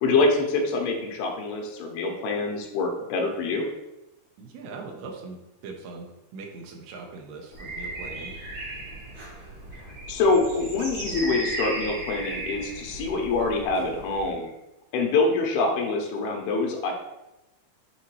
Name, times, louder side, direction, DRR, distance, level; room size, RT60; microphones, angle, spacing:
voice 1, 0.0-3.7 9.8-14.5 14.9-16.9, left 3 dB, 80° left, 2 dB, 2.8 m, -25 dB
voice 2, 4.4-5.4 5.6-8.3, right 4 dB, 85° right, 2 dB, 2.8 m, -40 dB
sound 1, 7.5-14.3, right 2 dB, 45° right, 1.8 m, -36 dB
8.3 x 4.0 x 3.1 m, 0.96 s
omnidirectional pair, 4.4 m